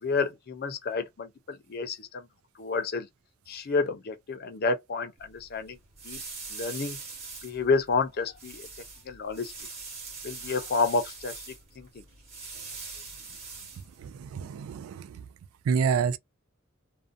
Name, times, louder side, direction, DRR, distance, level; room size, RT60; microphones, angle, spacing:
voice 1, 0.0-2.3 2.6-3.1 3.5-5.8 6.0-6.2 6.5-7.0 7.4-8.7 9.1-9.5 10.2-12.0, left 4 dB, 50° left, 0.5 m, -30 dB
sound 1, 5.2-14.4, right 4 dB, 30° right, 0.9 m, -43 dB
voice 2, 14.0-15.2 15.7-16.2, right 6 dB, 80° right, 0.3 m, -28 dB
2.5 x 2.1 x 2.5 m
head